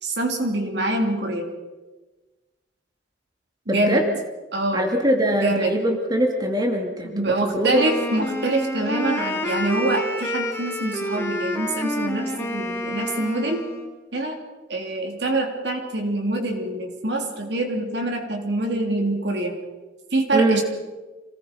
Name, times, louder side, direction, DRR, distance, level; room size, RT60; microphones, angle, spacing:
voice 1, 0.0-1.5 3.7-4.0 4.5-4.9 5.3-5.7 7.0-13.6 14.1-14.4 14.7-19.5 20.1-20.6, right 2 dB, 65° right, 3 dB, 3.3 m, -25 dB
voice 2, 3.7-4.0 4.7-7.9 20.3-20.6, right 1 dB, 20° right, 2 dB, 2.4 m, -22 dB
Wind instrument woodwind instrument, 7.7-13.9, equal, 15° left, 2.2 m, -28 dB
26.5 x 19.0 x 5.4 m, 1.2 s
head